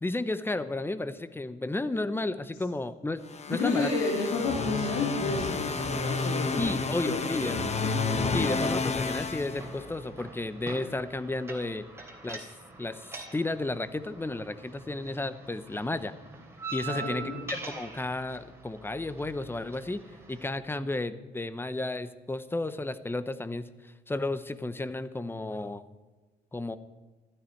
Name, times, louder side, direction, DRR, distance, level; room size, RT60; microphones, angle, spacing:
voice 1, 0.0-3.2 3.5-3.9 6.6-7.6 8.3-11.9 12.2-12.5 12.8-16.1 16.7-25.8 26.5-26.8, left 2 dB, 10° left, 13 dB, 0.8 m, -33 dB
sound 1, 3.3-10.2, left 4 dB, 35° left, 1.1 m, -31 dB
voice 2, 3.5-6.7 7.0-8.0 16.9-17.4, left 3 dB, 85° left, -1 dB, 2.6 m, -31 dB
sound 2, 5.5-20.5, right 3 dB, 10° right, 3.3 m, -45 dB
14.5 x 13.0 x 4.6 m, 1.3 s
cardioid pair, 90°, 20 cm